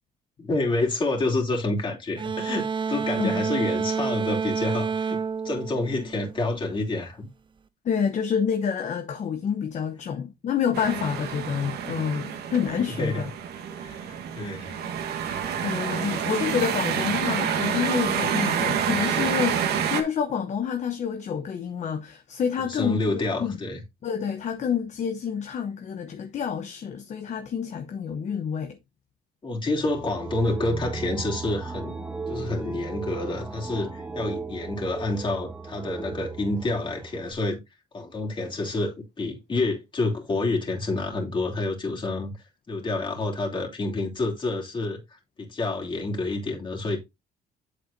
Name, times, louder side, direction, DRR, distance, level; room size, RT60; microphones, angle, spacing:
voice 1, 0.4-5.2 5.4-7.3 13.0-13.2 13.8-14.7 22.7-23.8 29.4-32.0 32.3-37.6 37.9-47.0, left 2 dB, 30° left, 3.0 m, -28 dB
sound 1, 2.2-6.6, right 6 dB, 30° right, 0.6 m, -29 dB
voice 2, 3.2-3.7 7.8-13.2 15.2-23.6 24.0-28.8, left 7 dB, 45° left, 0.9 m, -28 dB
sound 2, 10.7-20.0, right 8 dB, 70° right, 1.3 m, -28 dB
sound 3, 29.8-37.3, right 4 dB, 10° right, 0.9 m, -36 dB
8.2 x 7.1 x 2.6 m
cardioid pair, 110°, 17 cm